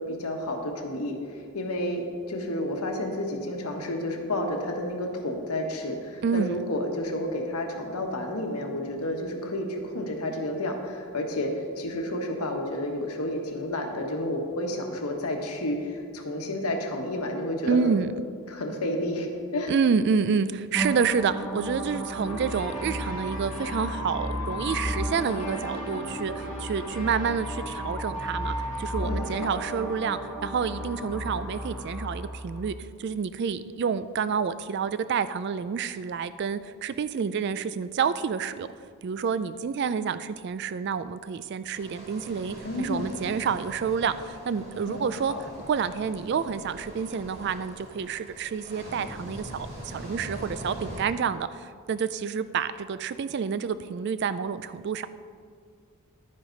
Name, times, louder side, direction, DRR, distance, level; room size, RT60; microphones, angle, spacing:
voice 1, 0.1-17.9 18.5-19.7 29.0-29.5 42.6-43.2 44.8-45.4, left 1 dB, 85° left, 3 dB, 1.4 m, -31 dB
voice 2, 6.2-6.6 17.7-18.1 19.7-38.7 39.0-45.3 45.7-55.1, right 6 dB, 50° right, 14 dB, 0.3 m, -28 dB
sound 1, 20.7-32.7, equal, ahead, 1.0 m, -34 dB
sound 2, 22.1-30.0, equal, 35° left, 1.6 m, -42 dB
sound 3, 41.7-51.0, equal, 30° right, 2.3 m, -42 dB
11.0 x 9.7 x 4.0 m, 2.2 s
head